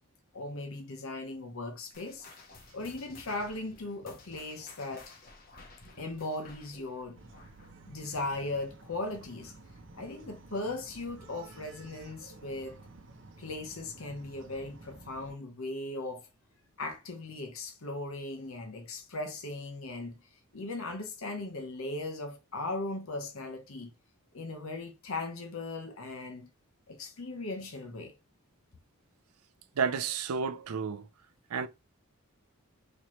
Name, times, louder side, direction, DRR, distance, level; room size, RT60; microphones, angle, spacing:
voice 1, 0.3-2.3 2.7-5.1 6.0-7.2 7.8-9.5 9.9-12.8 13.4-16.3 16.8-20.2 20.5-23.9 24.3-26.5 26.9-28.1, left 2 dB, 70° left, 0.8 m, -38 dB
sound 1, 1.9-8.8 9.1-9.4 10.0-10.1 10.9-11.0, left 3 dB, 40° left, 0.9 m, -54 dB
Bark, 7.1-15.3, right 2 dB, 55° right, 0.7 m, -52 dB
voice 2, 29.8-31.1 31.5-31.7, right 6 dB, 90° right, 0.5 m, -31 dB
4.2 x 2.9 x 3.1 m
head